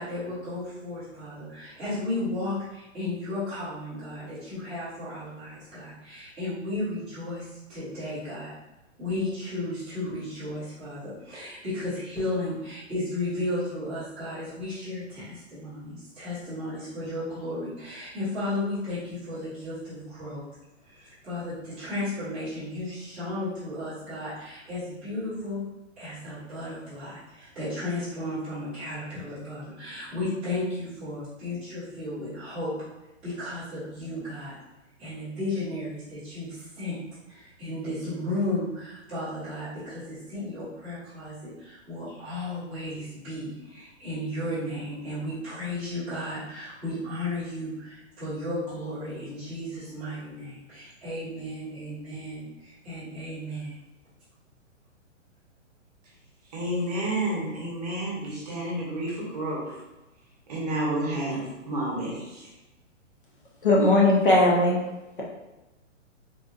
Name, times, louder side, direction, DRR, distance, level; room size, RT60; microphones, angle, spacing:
voice 1, 0.0-8.5 9.0-20.4 20.8-25.6 26.0-32.7 33.2-34.5 35.0-37.0 37.3-53.8, left 1 dB, 5° right, 0.7 m, -34 dB
voice 2, 56.5-59.7 60.5-62.1, right 1 dB, 30° right, 0.9 m, -30 dB
voice 3, 63.6-64.8, left 2 dB, 40° left, 0.6 m, -19 dB
3.8 x 2.4 x 2.4 m
hypercardioid pair, 175°, 38 cm